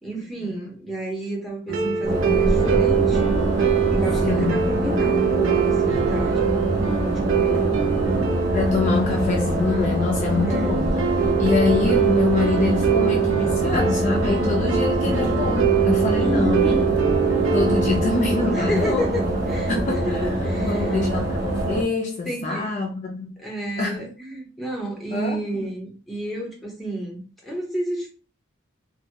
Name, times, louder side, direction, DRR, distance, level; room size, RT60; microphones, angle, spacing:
voice 1, 0.0-3.3 3.9-7.6 10.4-10.8 16.2-16.9 18.5-21.1 22.2-22.7 23.4-28.1, right 1 dB, ahead, 0.7 m, -31 dB
sound 1, 1.7-19.7, right 7 dB, 75° right, 0.4 m, -24 dB
sound 2, 2.0-21.8, right 1 dB, 55° right, 0.8 m, -24 dB
voice 2, 4.2-4.7 8.5-11.0 11.4-16.8 17.5-19.1 19.7-20.3 20.6-21.3 21.7-23.4 23.8-24.1 25.1-25.7, left 3 dB, 35° left, 0.4 m, -25 dB
2.1 x 2.1 x 2.7 m
head